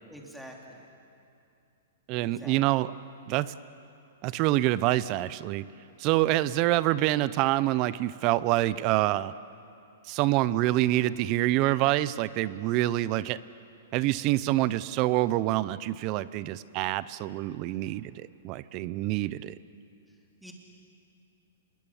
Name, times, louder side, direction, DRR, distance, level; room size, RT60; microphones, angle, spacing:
voice 1, 0.1-0.9 2.2-2.8 20.1-20.5, equal, ahead, 0 dB, 2.7 m, -48 dB
voice 2, 2.1-2.9 3.3-3.5 4.2-5.6 6.0-9.3 10.1-13.4 13.9-19.5, right 16 dB, 35° right, 17 dB, 0.6 m, -26 dB
27.5 x 21.5 x 7.1 m, 2.6 s
hypercardioid pair, 155°, 0 cm